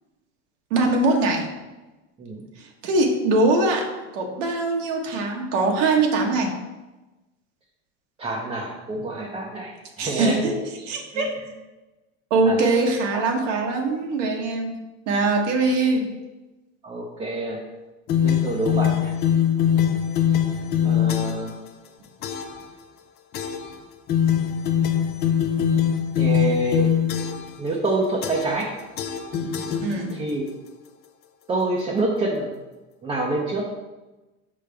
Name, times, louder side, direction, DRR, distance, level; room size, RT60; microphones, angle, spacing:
voice 1, 0.7-1.5 2.6-3.9 4.1-6.5 10.0-10.6 10.9-11.4 12.3-14.7 15.1-16.1 29.8-30.2, right 2 dB, 80° right, 1 dB, 1.3 m, -22 dB
voice 2, 8.2-10.6 11.1-11.5 12.4-12.6 13.1-13.5 16.8-17.6 18.2-19.1 20.8-21.5 26.2-26.9 27.6-28.7 30.1-30.5 31.5-32.5 33.0-33.7, right 2 dB, 15° right, -2 dB, 0.6 m, -27 dB
sound 1, 18.1-21.5 22.2-22.6 23.3-23.8 24.1-27.6 28.2-28.7 29.0-30.3, left 9 dB, 30° left, 0.4 m, -23 dB
5.5 x 5.0 x 3.4 m, 1.1 s
supercardioid pair, 140°, 36 cm